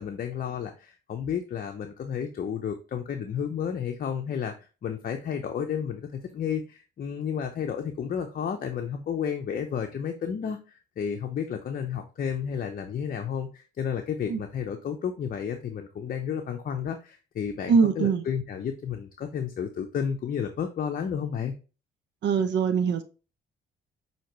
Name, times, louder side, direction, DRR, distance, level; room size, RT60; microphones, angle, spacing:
voice 1, 0.0-4.5 4.8-21.5, left 7 dB, 45° left, 0.7 m, -32 dB
voice 2, 17.7-18.2 22.2-23.0, right 6 dB, 65° right, 0.6 m, -22 dB
5.7 x 2.9 x 3.0 m
cardioid pair, 90°, 20 cm